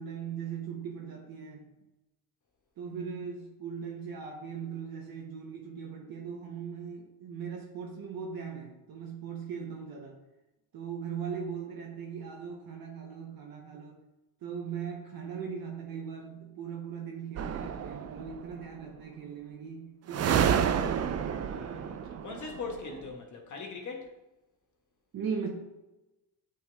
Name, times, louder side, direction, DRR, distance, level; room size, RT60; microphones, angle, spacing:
voice 1, 0.0-1.7 2.8-10.2 10.7-14.0 14.4-20.9 25.1-25.5, right 6 dB, 60° right, 0 dB, 1.1 m, -39 dB
sound 1, 17.4-18.5 20.1-23.0, right 8 dB, 40° right, 0.5 m, -30 dB
voice 2, 21.5-24.1, left 4 dB, 45° left, 1 dB, 1.3 m, -41 dB
8.4 x 3.4 x 3.4 m, 1.0 s
cardioid pair, 85°, 41 cm